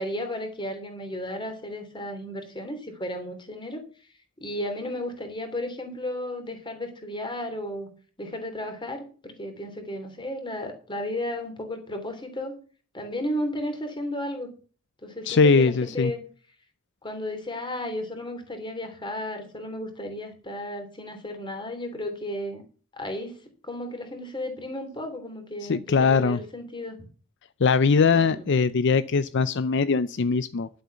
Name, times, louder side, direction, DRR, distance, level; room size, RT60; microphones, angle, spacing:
voice 1, 0.0-3.8 4.4-7.9 8.2-12.6 12.9-14.5 15.0-16.2 17.0-22.6 23.0-27.0 28.1-28.5, left 1 dB, 25° left, 6 dB, 3.0 m, -34 dB
voice 2, 15.2-16.1 25.6-26.4 27.6-30.7, left 5 dB, 60° left, 14 dB, 0.5 m, -21 dB
11.5 x 7.9 x 6.9 m, 0.40 s
head